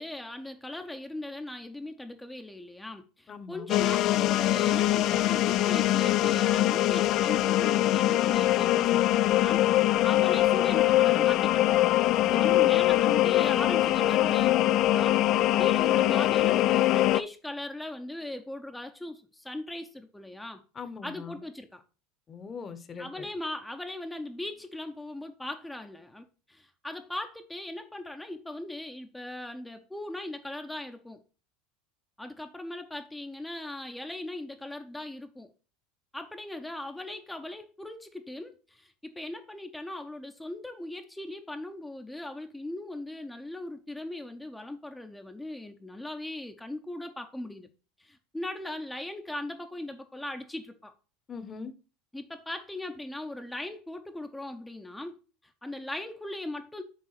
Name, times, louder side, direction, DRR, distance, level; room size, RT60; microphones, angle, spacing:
voice 1, 0.0-11.7 12.3-20.6 21.0-21.8 23.0-31.2 32.2-35.5 36.1-47.7 48.0-50.9 52.1-55.2 55.4-56.8, left 1 dB, 5° left, 0.7 m, -39 dB
voice 2, 3.3-3.7 12.2-12.8 20.7-21.4 22.3-23.3 51.3-51.7, left 5 dB, 25° left, 0.9 m, -40 dB
sound 1, 3.7-17.2, left 14 dB, 50° left, 0.4 m, -23 dB
6.4 x 3.6 x 5.8 m
supercardioid pair, 115°, 0 cm